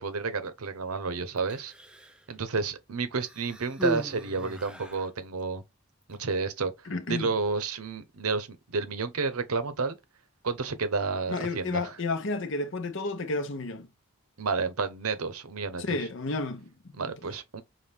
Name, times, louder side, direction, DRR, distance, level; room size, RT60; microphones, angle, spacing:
voice 1, 0.0-1.7 2.3-5.6 6.1-6.7 7.1-10.0 10.4-11.9 14.4-15.8 16.9-17.6, right 4 dB, 80° right, 0.8 m, -30 dB
Human voice, 1.4-2.3 3.2-5.1 6.0-6.2, equal, 5° right, 0.4 m, -37 dB
voice 2, 6.9-7.3 11.3-13.9 15.8-17.1, left 3 dB, 55° left, 0.8 m, -32 dB
5.6 x 2.5 x 3.4 m
head